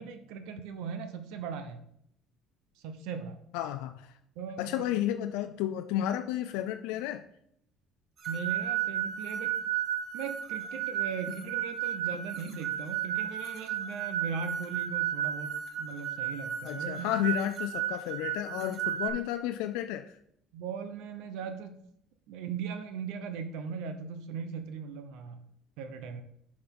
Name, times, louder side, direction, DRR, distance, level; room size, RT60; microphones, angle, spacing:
voice 1, 0.0-1.8 2.8-3.4 4.4-4.7 8.3-9.6 10.1-17.1 20.5-21.8 22.3-25.4 25.8-26.2, right 6 dB, 75° right, 9 dB, 0.9 m, -39 dB
voice 2, 3.5-4.1 4.6-7.2 16.6-20.2, left 12 dB, 90° left, 8 dB, 0.4 m, -32 dB
sound 1, 8.2-19.1, right 10 dB, 40° right, 1.3 m, -33 dB
6.9 x 5.1 x 6.0 m, 0.71 s
cardioid pair, 150°, 0 cm